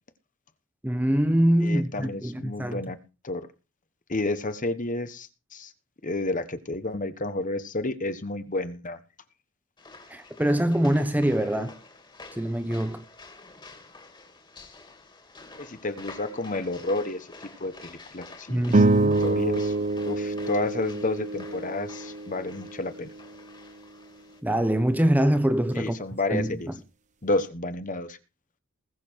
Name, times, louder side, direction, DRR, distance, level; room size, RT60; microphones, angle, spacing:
voice 1, 0.8-2.8 10.1-11.7 12.3-13.0 18.5-19.2 24.4-25.9 26.3-26.5, right 1 dB, 10° right, 1.1 m, -24 dB
voice 2, 1.6-3.0 3.2-3.4 4.1-5.7 6.0-9.0 15.6-17.3 17.6-18.8 19.2-19.7 20.0-23.1 25.7-26.7 27.2-28.2, left 2 dB, 40° left, 1.3 m, -30 dB
sound 1, 9.8-24.4, left 3 dB, 20° left, 2.4 m, -48 dB
sound 2, 18.7-23.2, right 2 dB, 35° right, 0.6 m, -26 dB
20.5 x 6.9 x 4.6 m
head